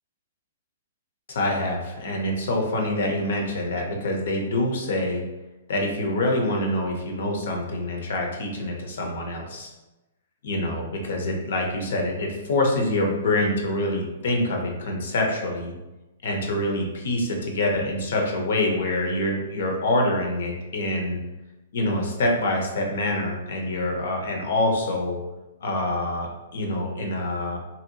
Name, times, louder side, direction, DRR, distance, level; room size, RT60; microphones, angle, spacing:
voice 1, 1.3-5.2 5.7-9.7 10.4-15.7 16.2-21.2 21.7-25.2 25.6-27.6, left 1 dB, 70° left, 1 dB, 0.6 m, -26 dB
2.7 x 2.1 x 2.7 m, 1.0 s
hypercardioid pair, 145°, 0 cm